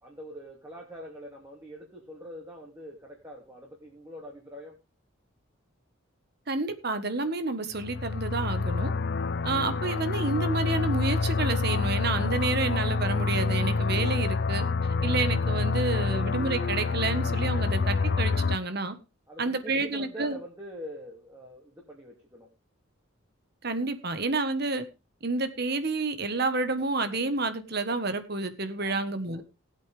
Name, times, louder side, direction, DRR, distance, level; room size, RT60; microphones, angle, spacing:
voice 1, 0.0-4.8 19.3-22.5 28.8-29.4, equal, 15° right, 3.0 m, -44 dB
voice 2, 6.5-8.9 9.4-14.7 15.0-19.0 19.4-20.4 23.6-24.8 25.2-29.4, right 3 dB, 50° right, 1.5 m, -29 dB
sound 1, 7.7-18.6, left 4 dB, 50° left, 0.5 m, -27 dB
19.0 x 8.3 x 3.5 m
head